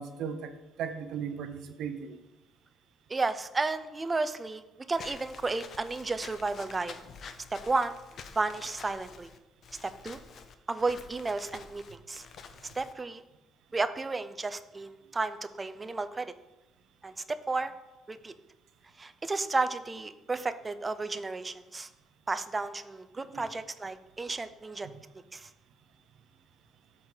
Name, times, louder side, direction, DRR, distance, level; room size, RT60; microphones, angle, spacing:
voice 1, 0.0-2.2 23.3-23.4 24.8-25.0, right 7 dB, 55° right, 9 dB, 0.7 m, -37 dB
voice 2, 3.1-4.6 4.9-6.9 7.5-8.0 8.3-9.3 9.8-10.2 10.7-12.3 12.8-13.2 13.7-16.3 17.0-17.7 18.1-18.3 19.0-21.9 22.3-24.9 25.3-25.5, right 3 dB, 15° right, 11 dB, 0.3 m, -32 dB
Walk footsteps / Squeak, 5.0-12.9, left 6 dB, 40° left, 0.5 m, -48 dB
12.0 x 4.3 x 3.8 m, 1.0 s
cardioid pair, 175°, 0 cm